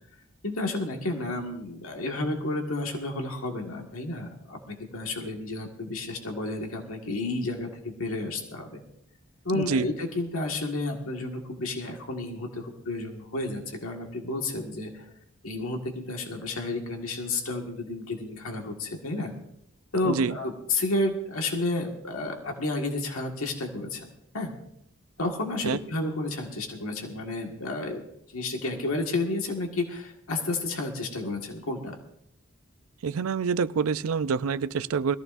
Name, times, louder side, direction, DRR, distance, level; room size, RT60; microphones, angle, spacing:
voice 1, 0.4-8.8 9.4-15.1 15.4-19.3 19.9-24.5 25.2-28.1 28.3-32.0, left 2 dB, 90° left, 2 dB, 1.8 m, -31 dB
voice 2, 9.5-9.9 20.0-20.4 25.6-25.8 33.0-35.2, right 5 dB, 90° right, 14 dB, 0.5 m, -26 dB
21.0 x 14.5 x 2.6 m, 0.77 s
head